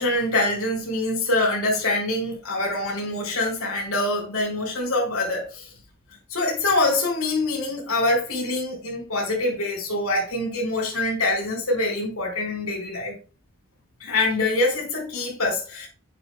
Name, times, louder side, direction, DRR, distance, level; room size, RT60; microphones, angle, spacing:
voice 1, 0.0-5.6 6.3-13.2 14.0-15.9, left 2 dB, 85° left, 4.8 m, -25 dB
9.5 x 9.0 x 2.3 m
head